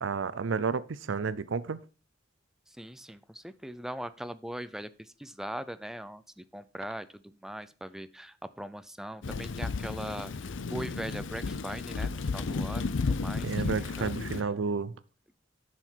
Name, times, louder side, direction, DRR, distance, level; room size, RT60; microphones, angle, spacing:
voice 1, 0.0-1.8 13.4-14.9, right 5 dB, 80° right, 0.5 m, -31 dB
voice 2, 2.7-14.5, equal, 5° right, 0.4 m, -41 dB
Thunder / Rain, 9.2-14.4, left 4 dB, 75° left, 0.6 m, -33 dB
9.6 x 5.9 x 4.5 m
head